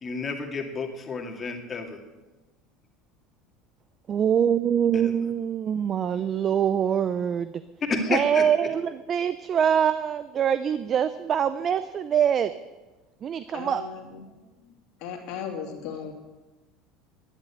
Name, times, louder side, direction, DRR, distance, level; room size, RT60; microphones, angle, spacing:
voice 1, 0.0-2.0 4.9-5.1 7.9-8.4, left 4 dB, 30° left, 3 dB, 2.4 m, -30 dB
voice 2, 4.1-7.5 8.1-12.5 13.2-13.8, right 8 dB, 40° right, 13 dB, 0.6 m, -24 dB
voice 3, 13.5-14.3 15.0-16.1, left 7 dB, 65° left, 2 dB, 2.8 m, -36 dB
11.5 x 11.0 x 8.2 m, 1.2 s
hypercardioid pair, 85°, 0 cm